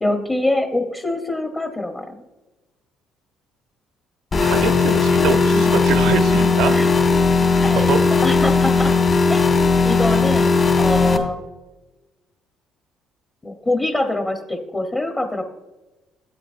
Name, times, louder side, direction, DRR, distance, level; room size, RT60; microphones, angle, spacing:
voice 1, 0.0-2.2 6.7-6.9 7.6-9.0 9.3-9.5 9.8-11.4 13.4-15.4, left 2 dB, 20° left, 3 dB, 1.0 m, -24 dB
sound 1, 4.3-11.2, left 4 dB, 40° left, 1.7 m, -17 dB
voice 2, 4.4-6.8 7.7-8.0, right 6 dB, 80° right, 7 dB, 1.0 m, -24 dB
13.0 x 8.8 x 2.6 m, 1.1 s
cardioid pair, 95°, 0 cm